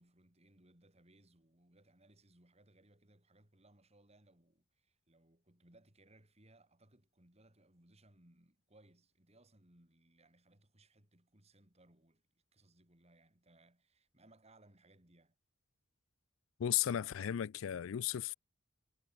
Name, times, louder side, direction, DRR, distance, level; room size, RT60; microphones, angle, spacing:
voice 1, 0.0-15.4, right 1 dB, 30° right, 4.0 m, -66 dB
voice 2, 16.6-18.3, left 11 dB, 75° left, 0.4 m, -35 dB
head